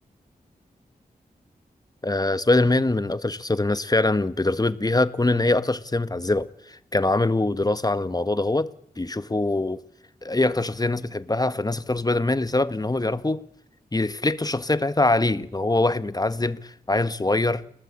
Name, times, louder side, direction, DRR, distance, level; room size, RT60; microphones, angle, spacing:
voice 1, 2.0-8.7 9.0-9.8 10.2-13.4 13.9-17.6, left 2 dB, 25° left, 1.5 m, -23 dB
29.5 x 19.5 x 8.7 m
cardioid pair, 55°, 16 cm